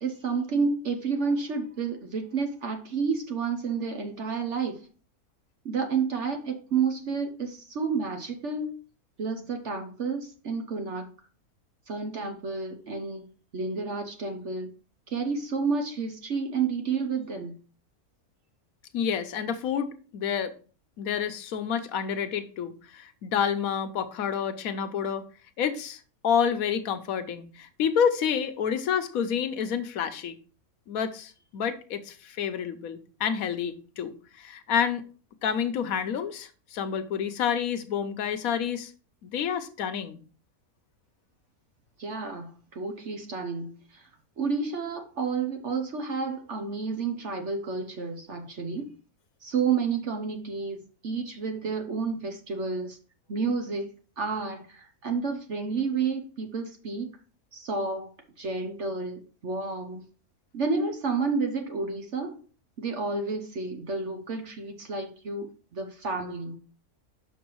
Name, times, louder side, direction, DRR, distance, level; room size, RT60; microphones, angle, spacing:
voice 1, 0.0-4.9 5.6-8.8 9.2-11.1 11.9-14.7 15.1-17.6 42.0-44.1 44.4-48.9 49.4-53.0 53.3-53.9 54.2-57.1 57.5-58.1 58.4-60.1 60.5-62.4 62.8-66.6, right 4 dB, 55° right, 4 dB, 1.1 m, -30 dB
voice 2, 18.9-20.5 21.0-25.3 25.6-30.4 30.9-35.0 35.4-38.9 39.2-40.2, left 7 dB, 70° left, 9 dB, 1.2 m, -29 dB
6.9 x 5.9 x 3.1 m, 0.38 s
omnidirectional pair, 1.6 m